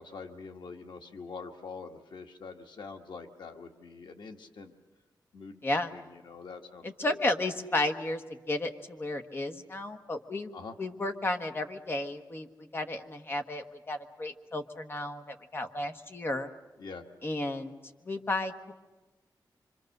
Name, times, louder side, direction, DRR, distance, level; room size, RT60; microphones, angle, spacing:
voice 1, 0.0-4.7 5.3-7.2 10.5-10.8 16.8-17.0, left 4 dB, 85° left, 5 dB, 1.6 m, -45 dB
voice 2, 6.8-10.5 10.8-12.5 12.7-16.5 17.2-17.8 18.0-18.7, left 2 dB, 30° left, 7 dB, 1.2 m, -33 dB
26.0 x 25.5 x 6.6 m, 1.2 s
wide cardioid pair, 180°, 8 cm